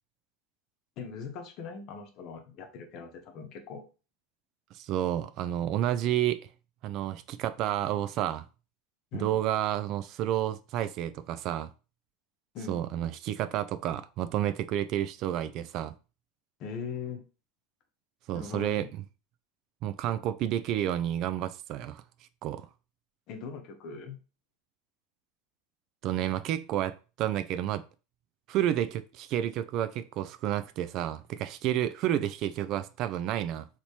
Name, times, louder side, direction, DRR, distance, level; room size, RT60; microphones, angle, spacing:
voice 1, 1.0-3.8 9.1-9.4 12.5-12.8 16.6-17.2 18.3-18.9 23.3-24.2, left 5 dB, 55° left, 0.8 m, -40 dB
voice 2, 4.7-6.5 6.8-8.4 9.1-11.7 12.7-15.9 18.3-18.9 19.8-22.0 22.4-22.7 26.0-27.8 28.5-33.7, right 12 dB, 50° right, 0.3 m, -30 dB
3.2 x 2.8 x 2.9 m
supercardioid pair, 110°, 0 cm